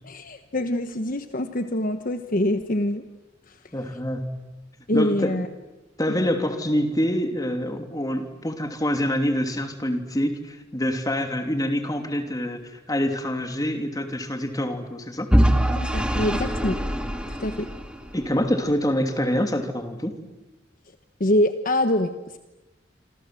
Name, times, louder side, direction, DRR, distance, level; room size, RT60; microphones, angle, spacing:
voice 1, 0.0-3.0 3.5-3.6 4.9-5.5 6.1-6.2 15.8-16.8 17.3-17.7 21.2-22.4, left 1 dB, 45° left, 8 dB, 1.2 m, -25 dB
voice 2, 3.7-4.2 4.9-5.3 6.0-15.3 18.1-20.1, equal, 20° left, 6 dB, 2.9 m, -26 dB
Vehicle / Engine, 15.3-18.3, equal, 5° right, 2.3 m, -23 dB
27.0 x 27.0 x 7.8 m, 1.0 s
head